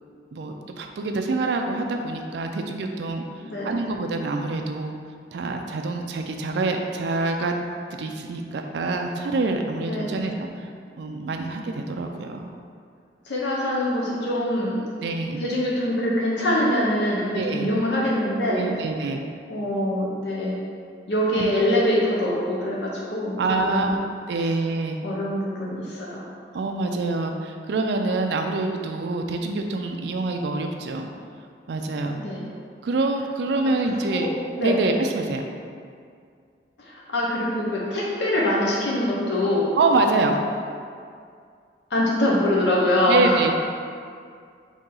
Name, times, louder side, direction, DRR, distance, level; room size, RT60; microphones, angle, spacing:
voice 1, 0.3-3.3 3.6-5.0 5.3-7.5 8.0-10.7 11.0-12.5 15.0-15.4 17.3-17.8 18.5-19.2 21.3-21.5 23.4-24.0 24.3-25.0 26.5-31.1 31.7-32.2 32.8-34.3 34.6-35.5 39.8-40.4 43.1-43.6, right 3 dB, 70° right, 4 dB, 0.4 m, -26 dB
voice 2, 3.4-3.9 9.9-10.3 13.3-14.8 15.4-18.7 19.5-20.6 21.1-23.4 23.6-23.9 25.0-26.2 32.2-32.5 33.9-34.3 34.6-34.8 36.8-39.7 41.9-43.4, left 1 dB, 75° left, -4 dB, 0.7 m, -24 dB
4.1 x 2.8 x 3.8 m, 2.2 s
head